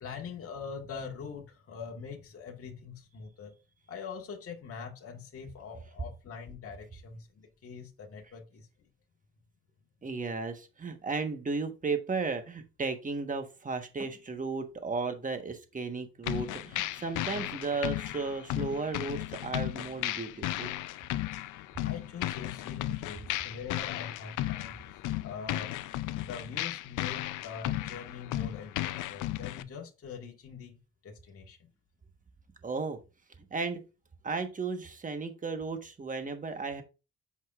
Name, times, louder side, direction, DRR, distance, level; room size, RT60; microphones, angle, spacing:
voice 1, 0.0-3.5 3.9-8.7 21.8-24.8 25.2-25.7 26.2-31.6, left 6 dB, 50° left, 1.5 m, -43 dB
voice 2, 10.0-20.7 32.6-33.0 33.5-33.8 34.2-36.8, right 4 dB, 25° right, 1.3 m, -34 dB
sound 1, 16.2-29.6, left 15 dB, 85° left, 0.6 m, -35 dB
7.9 x 5.5 x 2.4 m
cardioid pair, 90°, 30 cm